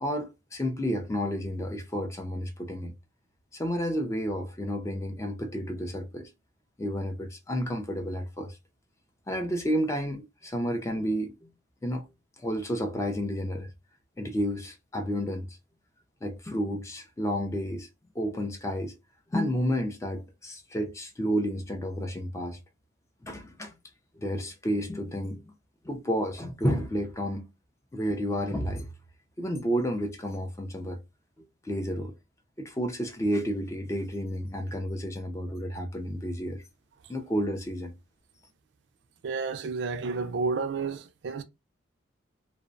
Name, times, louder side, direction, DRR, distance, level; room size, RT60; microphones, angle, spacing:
voice 1, 0.0-2.9 3.5-6.3 6.8-8.6 9.3-11.5 11.8-12.0 12.4-13.7 14.2-15.6 16.2-17.9 18.2-18.9 19.3-22.6 23.2-23.7 24.1-25.5 25.8-27.5 27.9-28.9 29.4-31.0 31.6-32.1 32.6-36.6 37.1-37.9, equal, 15° left, 0.4 m, -31 dB
voice 2, 39.2-41.4, right 4 dB, 60° right, 0.3 m, -31 dB
2.4 x 2.0 x 2.5 m
head